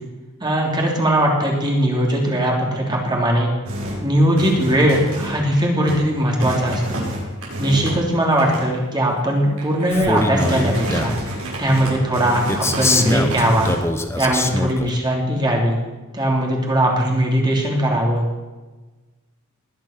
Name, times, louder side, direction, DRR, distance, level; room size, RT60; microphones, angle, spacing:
voice 1, 0.4-3.5 4.0-7.0 7.6-11.2 11.6-13.7 14.2-15.8 16.1-18.2, right 1 dB, 20° right, -1 dB, 3.1 m, -19 dB
sound 1, 3.7-4.1 4.4-5.6 5.8-6.1 6.4-8.7 9.1-9.2 9.6-13.8, right 1 dB, 75° right, 6.9 m, -28 dB
Male speech man speaking, 9.9-11.2 12.5-14.9, left 2 dB, 10° left, 1.0 m, -23 dB
20.5 x 10.5 x 5.9 m, 1.2 s
head